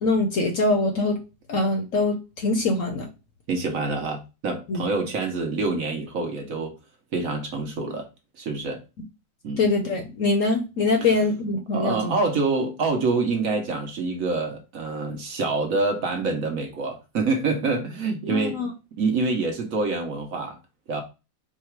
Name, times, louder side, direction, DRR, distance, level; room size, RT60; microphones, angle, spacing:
voice 1, 0.0-1.2 1.5-3.1 4.7-4.9 9.6-12.2 18.3-18.7, left 2 dB, 60° left, 1.0 m, -23 dB
voice 2, 3.5-6.7 7.1-8.1 8.4-8.8 9.4-9.7 11.7-18.6 19.0-20.6 20.9-21.0, right 3 dB, 60° right, 1.1 m, -26 dB
4.8 x 2.3 x 4.4 m
omnidirectional pair, 1.9 m